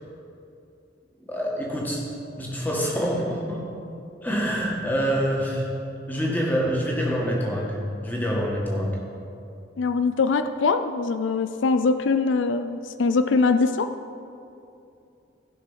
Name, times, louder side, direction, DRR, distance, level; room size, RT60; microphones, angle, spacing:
voice 1, 1.3-2.0 2.4-3.6 4.2-5.7 6.1-7.8 8.0-9.0, equal, 10° left, -3 dB, 1.8 m, -26 dB
voice 2, 9.8-13.9, left 4 dB, 80° left, 10 dB, 0.4 m, -22 dB
15.5 x 6.0 x 5.7 m, 2.7 s
head